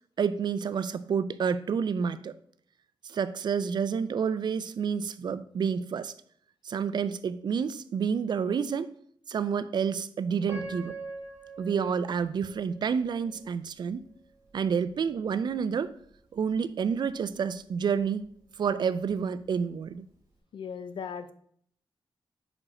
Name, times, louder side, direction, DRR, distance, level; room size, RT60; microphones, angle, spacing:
voice 1, 0.2-2.3 3.0-6.1 6.6-8.9 9.3-11.0 11.6-14.0 14.5-15.9 16.3-18.3 18.6-20.1, right 6 dB, 55° right, 14 dB, 0.4 m, -29 dB
Piano, 10.5-13.5 14.1-14.2 14.8-15.0, right 3 dB, 40° right, 1.9 m, -43 dB
voice 2, 20.5-21.3, left 6 dB, 75° left, 11 dB, 0.5 m, -37 dB
4.9 x 4.4 x 4.8 m, 0.63 s
wide cardioid pair, 145°, 9 cm